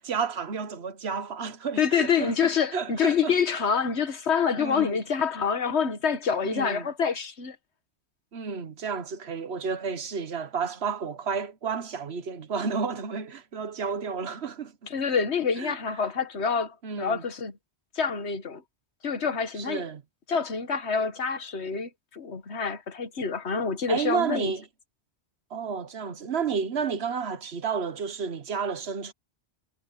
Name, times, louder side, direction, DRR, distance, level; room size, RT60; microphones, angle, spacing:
voice 1, 0.0-3.3 4.6-5.0 6.4-6.9 8.3-14.9 15.6-15.8 16.8-17.2 19.6-20.0 23.9-24.6 25.5-29.1, right 6 dB, 75° right, 1.4 m, -31 dB
voice 2, 1.8-7.6 14.9-17.5 17.9-18.6 19.0-19.8 20.3-24.5, left 6 dB, 90° left, 1.7 m, -27 dB
omnidirectional pair, 1.1 m